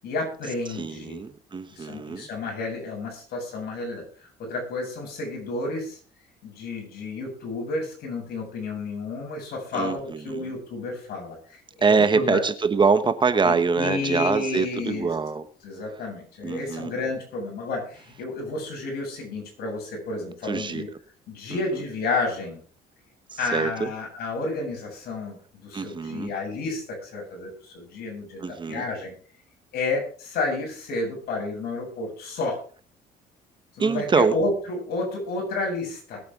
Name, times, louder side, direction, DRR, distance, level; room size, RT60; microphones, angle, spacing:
voice 1, 0.0-1.2 1.7-4.0 4.4-6.0 6.4-12.4 13.4-15.1 15.6-20.9 21.3-22.6 23.4-29.1 29.7-32.6 33.8-36.2, left 3 dB, 70° left, 0 dB, 7.9 m, -31 dB
voice 2, 0.7-2.3 9.7-10.5 11.8-15.4 16.4-16.9 20.4-20.8 23.5-23.9 25.7-26.3 28.4-28.9 33.8-34.4, right 5 dB, 30° right, 11 dB, 1.1 m, -24 dB
21.0 x 8.6 x 3.7 m, 0.42 s
cardioid pair, 110°, 17 cm